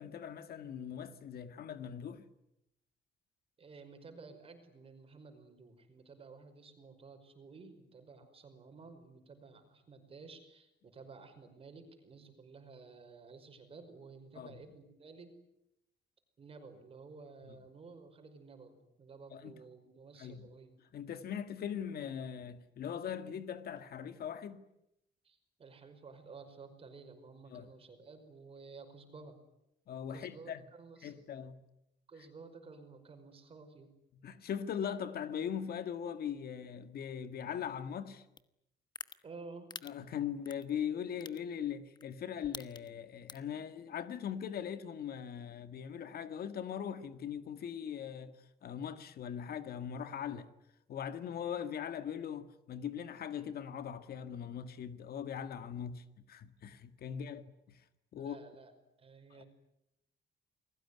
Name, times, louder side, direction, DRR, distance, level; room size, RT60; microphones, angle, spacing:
voice 1, 0.0-2.3 14.4-14.5 19.3-19.6 20.2-20.5 20.9-24.6 27.5-27.7 29.9-30.6 31.0-31.6 34.2-38.2 39.8-50.5 50.9-57.8 58.1-58.4 59.3-59.4, left 8 dB, 60° left, 1.8 m, -40 dB
voice 2, 3.6-15.3 16.4-20.7 25.2-29.4 30.1-31.1 32.1-33.9 39.2-39.7 57.1-57.3 58.2-58.7 59.0-59.5, right 4 dB, 30° right, 5.3 m, -53 dB
sound 1, 38.4-38.5 38.9-39.1 39.7-39.9 40.4-40.6 41.2-41.4 41.9-42.1 42.4-42.9 43.3-43.5, left 5 dB, 25° left, 1.1 m, -43 dB
29.5 x 21.0 x 9.7 m
cardioid pair, 175°, 18 cm